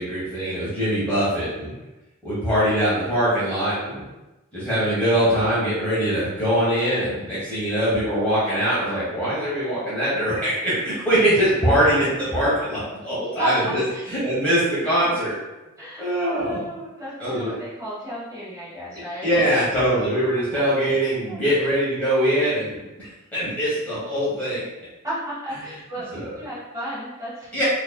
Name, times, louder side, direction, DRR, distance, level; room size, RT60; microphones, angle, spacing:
voice 1, 0.0-1.7 2.2-4.0 4.5-13.8 14.1-15.4 16.0-16.6 17.2-17.5 19.2-24.6 26.1-26.3 27.5-27.6, equal, 10° left, -11 dB, 1.0 m, -22 dB
voice 2, 13.4-14.1 15.8-19.3 21.3-21.7 25.0-27.5, right 1 dB, 15° right, -9 dB, 1.3 m, -33 dB
4.5 x 2.6 x 2.2 m, 1.0 s
head